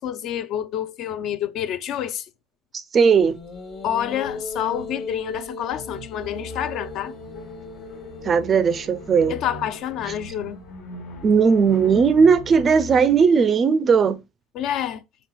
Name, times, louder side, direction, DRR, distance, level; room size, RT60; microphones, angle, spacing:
voice 1, 0.0-2.3 3.8-7.1 9.3-10.6 14.5-15.0, left 10 dB, 55° left, 0.5 m, -28 dB
voice 2, 2.9-3.4 8.2-9.3 11.2-14.2, right 5 dB, 30° right, 0.4 m, -17 dB
sound 1, 3.2-10.6, left 2 dB, 35° left, 1.0 m, -38 dB
sound 2, 5.7-13.3, left 1 dB, 80° left, 1.4 m, -41 dB
4.4 x 3.8 x 2.3 m
supercardioid pair, 115°, 0 cm